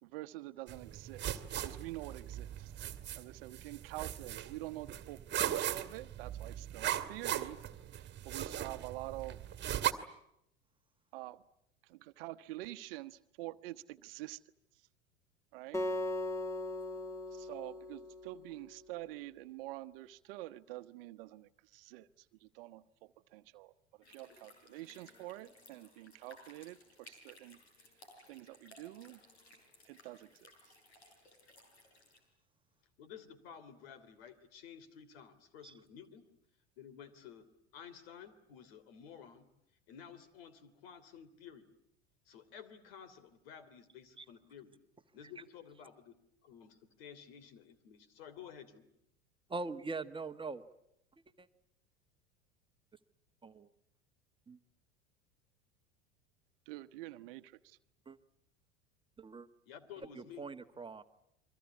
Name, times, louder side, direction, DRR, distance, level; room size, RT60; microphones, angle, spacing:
voice 1, 0.0-1.2 1.6-2.9 3.2-7.6 8.2-9.4 11.1-11.4 11.9-14.4 15.5-15.8 17.3-22.1 22.4-23.7 24.1-27.6 28.3-29.2 29.9-30.5 56.7-57.8, right 17 dB, 60° right, 12 dB, 1.1 m, -47 dB
sound 1, 0.7-9.9, right 11 dB, 35° right, 1.9 m, -39 dB
Acoustic guitar, 15.7-19.0, left 1 dB, 10° left, 2.2 m, -39 dB
sound 2, 24.0-32.2, left 1 dB, 80° left, 6.9 m, -60 dB
voice 2, 33.0-36.3 36.8-37.5 37.7-39.4 39.9-41.7 42.2-44.7 45.1-46.1 46.4-48.9 59.7-60.5, left 8 dB, 65° left, 14 dB, 3.2 m, -53 dB
voice 3, 49.5-50.6 51.4-51.5 53.4-53.7 54.5-54.6 58.0-58.2 59.2-59.5 60.1-61.0, right 3 dB, 15° right, 9 dB, 1.4 m, -42 dB
29.5 x 23.5 x 8.4 m, 0.77 s
figure-of-eight pair, 80°, 32 cm